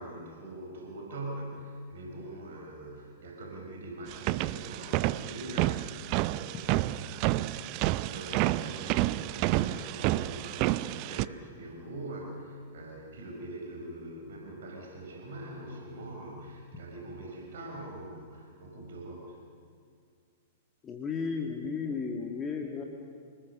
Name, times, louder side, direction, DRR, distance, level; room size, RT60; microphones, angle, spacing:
voice 1, 0.0-19.4, right 1 dB, 60° right, 0 dB, 4.9 m, -43 dB
sound 1, 4.1-11.3, right 16 dB, 40° right, 0.5 m, -30 dB
voice 2, 20.8-22.8, left 5 dB, 20° left, 2 dB, 1.9 m, -34 dB
26.5 x 20.0 x 6.6 m, 2.2 s
figure-of-eight pair, 100°, 0 cm